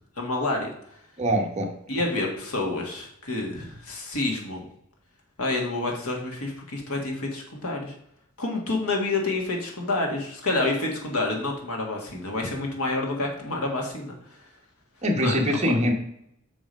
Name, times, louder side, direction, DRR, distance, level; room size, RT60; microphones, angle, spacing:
voice 1, 0.2-0.7 1.9-4.7 5.4-7.9 8.4-14.4 15.2-15.3, left 2 dB, 80° left, 1 dB, 1.8 m, -28 dB
voice 2, 1.2-1.7 15.0-15.9, equal, 30° right, 2 dB, 1.1 m, -23 dB
6.2 x 4.8 x 5.2 m, 0.71 s
head